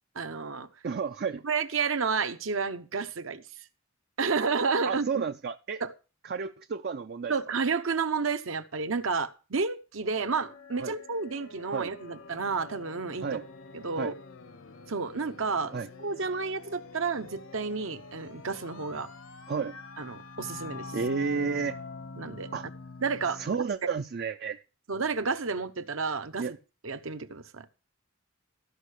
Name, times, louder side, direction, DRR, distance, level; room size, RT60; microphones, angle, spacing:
voice 1, 0.1-0.7 1.4-3.4 4.2-5.2 5.8-5.9 7.3-13.4 13.7-14.1 14.9-19.1 20.0-20.9 22.2-22.5 23.0-23.9 24.9-26.5 26.8-27.6, right 4 dB, 70° right, 0.9 m, -31 dB
voice 2, 0.8-1.4 4.9-5.8 6.2-7.3 10.8-10.9 11.7-11.9 13.2-13.5 14.0-14.1 15.7-15.9 19.5-19.8 20.9-21.8 22.5-22.7 23.4-24.6 26.4-26.5, right 5 dB, 50° right, 0.4 m, -31 dB
sound 1, 10.0-23.6, left 3 dB, 70° left, 0.9 m, -46 dB
14.0 x 5.6 x 6.5 m
head